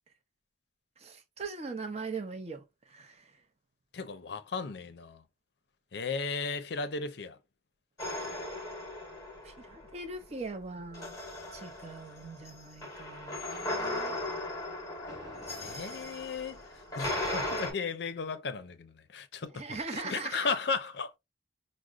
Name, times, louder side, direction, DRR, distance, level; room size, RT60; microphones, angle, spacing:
voice 1, 1.0-3.3 9.4-11.2 11.5-14.2 19.5-20.5, right 4 dB, 35° right, 0.5 m, -41 dB
voice 2, 3.9-5.2 5.9-7.4 15.6-16.6 16.9-19.8 20.1-21.2, left 4 dB, 60° left, 0.5 m, -35 dB
sound 1, 8.0-10.0 10.9-17.7, left 1 dB, 20° left, 1.0 m, -37 dB
4.8 x 2.0 x 2.4 m
head